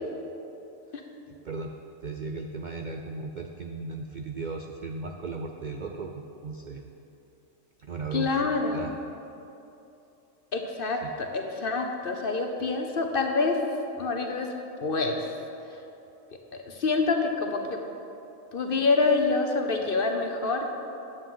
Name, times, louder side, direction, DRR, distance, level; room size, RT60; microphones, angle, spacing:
voice 1, 1.3-6.8 7.8-8.9 11.0-11.1, right 3 dB, 70° right, 3 dB, 0.4 m, -36 dB
voice 2, 8.1-8.8 10.5-13.6 14.0-14.5 14.8-15.4 16.5-17.8 18.5-20.6, left 3 dB, 50° left, 3 dB, 0.8 m, -26 dB
10.0 x 7.8 x 5.6 m, 2.9 s
omnidirectional pair, 1.5 m